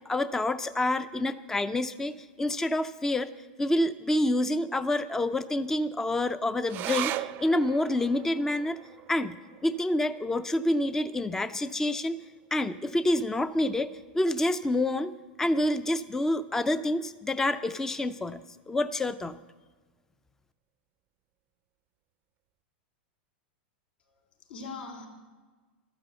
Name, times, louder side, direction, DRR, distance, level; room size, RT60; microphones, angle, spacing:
voice 1, 0.1-3.3 3.6-8.8 9.1-12.2 12.5-15.1 15.4-19.4, left 1 dB, 10° left, 13 dB, 0.5 m, -28 dB
sound 1, 6.7-13.4 13.8-13.9 14.2-14.9 15.4-15.5, right 15 dB, 40° right, 0.5 m, -40 dB
voice 2, 24.1-25.1, left 4 dB, 80° left, 1 dB, 4.0 m, -42 dB
13.0 x 12.5 x 7.9 m, 1.3 s
hypercardioid pair, 125°, 5 cm